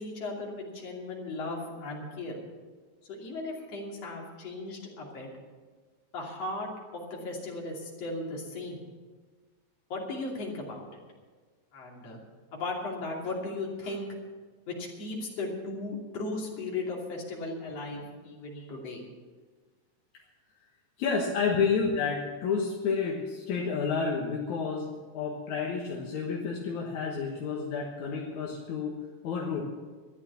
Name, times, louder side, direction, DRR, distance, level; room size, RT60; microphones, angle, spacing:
voice 1, 0.0-2.4 3.1-5.3 6.1-8.8 9.9-11.0 11.7-12.2 12.5-14.1 14.7-19.0 21.5-21.6, left 2 dB, 60° left, -2 dB, 3.9 m, -36 dB
voice 2, 21.0-29.0 29.2-29.6, left 5 dB, 80° left, -2 dB, 2.8 m, -30 dB
13.5 x 11.5 x 7.0 m, 1.4 s
omnidirectional pair, 3.3 m